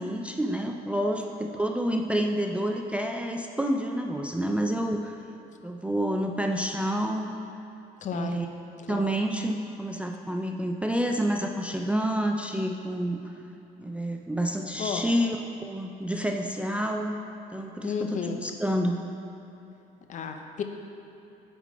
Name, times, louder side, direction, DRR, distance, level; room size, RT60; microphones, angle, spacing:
voice 1, 0.0-5.1 5.6-7.4 8.1-8.5 8.9-13.2 13.8-15.4 15.6-17.2 17.5-19.1, equal, 5° right, 3 dB, 0.3 m, -28 dB
voice 2, 8.0-8.4 8.9-9.1 14.8-15.0 17.8-18.4 20.1-20.6, left 7 dB, 50° left, 5 dB, 0.6 m, -32 dB
8.2 x 3.7 x 4.7 m, 3.0 s
cardioid pair, 110°, 17 cm